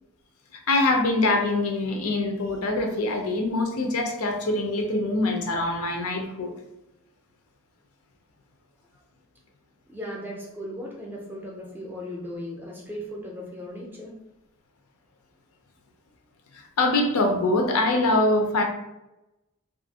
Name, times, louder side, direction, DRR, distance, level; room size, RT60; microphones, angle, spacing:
voice 1, 0.7-6.5 16.5-18.6, left 2 dB, 90° left, 3 dB, 0.5 m, -24 dB
voice 2, 9.9-14.2, equal, 10° right, -2 dB, 0.4 m, -37 dB
2.6 x 2.4 x 2.7 m, 0.93 s
head